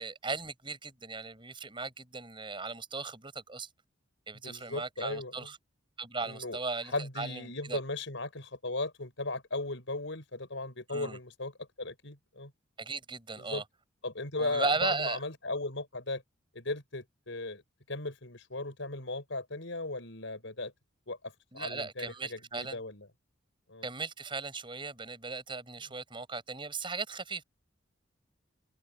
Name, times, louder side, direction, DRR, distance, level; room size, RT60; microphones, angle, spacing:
voice 1, 0.0-3.7 4.3-5.6 6.0-7.8 10.9-11.2 12.8-13.6 14.4-15.2 21.5-22.8 23.8-27.4, right 4 dB, 25° right, 7.6 m, -37 dB
voice 2, 4.4-5.5 6.2-6.6 6.9-11.5 11.8-12.5 13.4-13.6 14.0-16.2 16.5-17.6 17.9-20.7 21.1-21.2 21.5-23.1 23.7-23.9, left 2 dB, 70° left, 6.2 m, -37 dB
open air
head